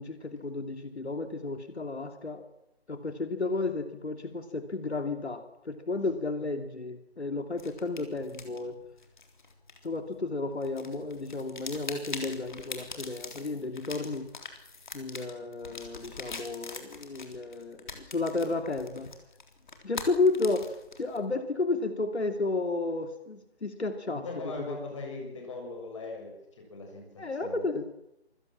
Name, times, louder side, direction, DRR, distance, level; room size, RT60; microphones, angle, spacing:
voice 1, 0.0-2.5 2.9-8.7 9.8-14.3 14.9-19.1 19.8-24.2 24.7-24.8 27.2-27.8, left 3 dB, 85° left, 7 dB, 2.8 m, -32 dB
sound 1, 7.6-10.3 10.6-21.2, left 4 dB, 45° left, 3.8 m, -43 dB
voice 2, 24.1-26.3 26.7-27.6, left 3 dB, 30° left, 1 dB, 6.7 m, -40 dB
27.0 x 16.5 x 7.5 m, 0.84 s
figure-of-eight pair, 170°, 32 cm